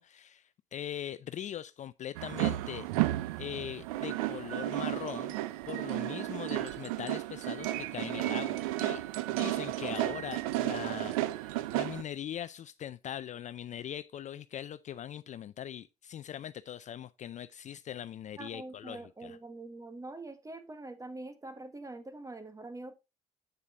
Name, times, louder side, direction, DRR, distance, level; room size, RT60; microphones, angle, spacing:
voice 1, 0.0-2.9 3.4-5.4 5.7-19.4, left 10 dB, 45° left, 0.4 m, -41 dB
sound 1, 2.1-12.0, right 16 dB, 85° right, 0.5 m, -33 dB
voice 2, 18.4-22.9, right 2 dB, 20° right, 1.4 m, -44 dB
8.2 x 6.7 x 2.5 m
hypercardioid pair, 65°, 18 cm